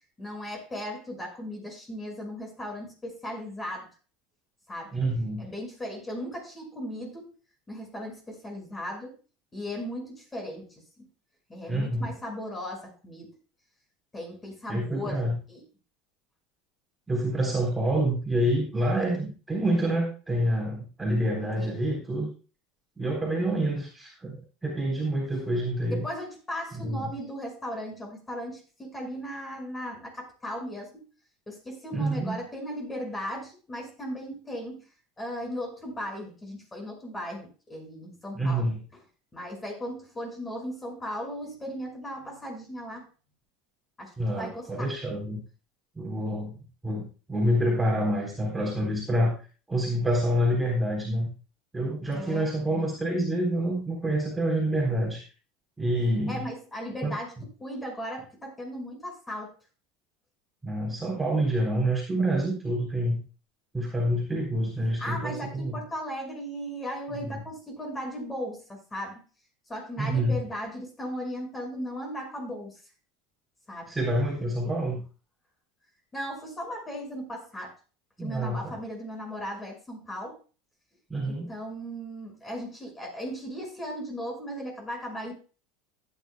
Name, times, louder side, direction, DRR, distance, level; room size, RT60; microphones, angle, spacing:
voice 1, 0.2-3.9 4.7-4.9 5.4-7.4 7.7-9.1 9.5-10.8 11.5-13.4 14.1-15.2 15.5-15.6 21.6-22.0 25.9-31.1 31.5-34.9 35.2-38.6 39.3-43.0 44.0-44.9 52.1-52.9 56.3-57.3 57.6-59.5 65.0-69.2 69.7-72.8 73.7-73.9 76.1-77.7 78.2-80.4 81.2-85.3, equal, 20° left, 2 dB, 5.7 m, -37 dB
voice 2, 4.9-5.5 11.7-12.1 14.7-15.4 17.1-22.3 23.0-26.0 26.8-27.1 31.9-32.4 38.3-38.8 44.2-45.4 46.0-46.5 46.8-49.4 49.7-51.3 51.7-55.2 55.8-56.4 57.0-57.1 60.6-63.2 63.7-65.7 70.0-70.4 73.9-75.0 78.2-78.7 81.1-81.5, right 1 dB, 10° right, -2 dB, 3.7 m, -27 dB
15.5 x 9.8 x 2.2 m, 0.35 s
hypercardioid pair, 75°, 0 cm